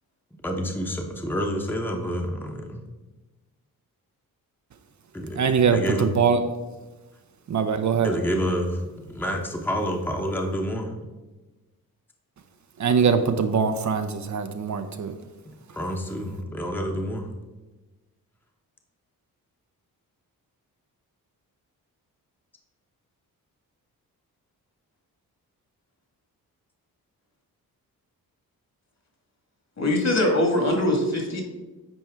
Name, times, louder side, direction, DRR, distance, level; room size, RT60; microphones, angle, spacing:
voice 1, 0.4-2.8 5.1-6.1 8.0-10.9 15.8-17.3, equal, 5° left, 2 dB, 0.9 m, -28 dB
voice 2, 5.4-6.4 7.5-8.1 12.8-15.1, right 6 dB, 50° right, 7 dB, 0.6 m, -22 dB
voice 3, 29.8-31.4, left 1 dB, 45° left, 2 dB, 1.9 m, -22 dB
9.1 x 4.3 x 3.6 m, 1.2 s
cardioid pair, 60°, 37 cm